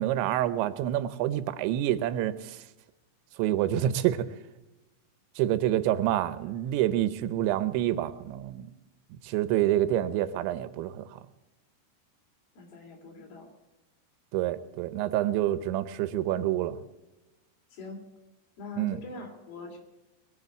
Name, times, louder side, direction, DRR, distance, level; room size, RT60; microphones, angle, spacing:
voice 1, 0.0-2.6 3.4-4.3 5.4-8.7 9.2-11.2 14.3-16.8 18.8-19.0, right 13 dB, 85° right, 13 dB, 3.0 m, -27 dB
voice 2, 12.6-13.5 17.7-18.1 18.6-19.8, left 3 dB, 60° left, 1 dB, 4.7 m, -43 dB
22.0 x 7.5 x 8.1 m, 1.0 s
omnidirectional pair, 5.1 m